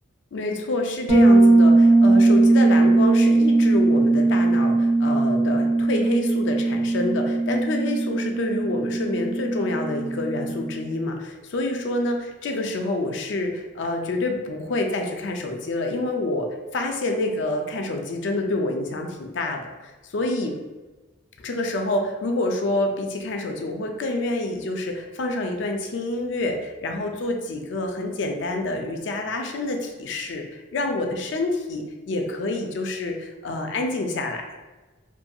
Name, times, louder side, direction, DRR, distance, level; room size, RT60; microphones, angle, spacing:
voice 1, 0.3-16.5 16.7-20.5 21.4-34.4, left 2 dB, 60° left, 3 dB, 0.4 m, -27 dB
Bass guitar, 1.1-10.8, right 2 dB, 70° right, 0.7 m, -19 dB
2.6 x 2.6 x 2.3 m, 1.2 s
head